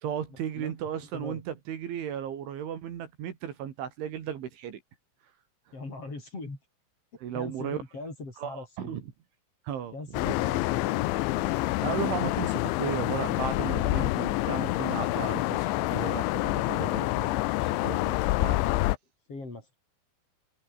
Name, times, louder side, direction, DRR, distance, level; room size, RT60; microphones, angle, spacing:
voice 1, 0.0-4.8 7.2-7.8 8.4-9.1 9.6-10.0 10.3-10.4 11.8-18.6, right 9 dB, 65° right, 4.8 m, -35 dB
voice 2, 0.5-1.4 5.7-6.6 7.3-9.0 9.9-11.0 19.3-19.7, left 2 dB, 30° left, 6.8 m, -41 dB
sound 1, 10.1-19.0, left 18 dB, 75° left, 3.0 m, -27 dB
omnidirectional pair, 6.0 m